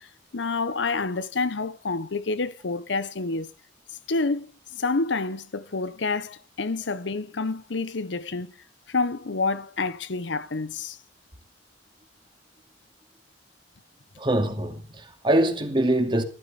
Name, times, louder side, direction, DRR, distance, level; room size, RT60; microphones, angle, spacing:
voice 1, 0.3-3.5 4.1-8.5 8.9-11.0, left 3 dB, 80° left, 0.9 m, -28 dB
voice 2, 14.2-16.2, right 1 dB, 25° right, 2.4 m, -23 dB
14.5 x 12.5 x 5.2 m
head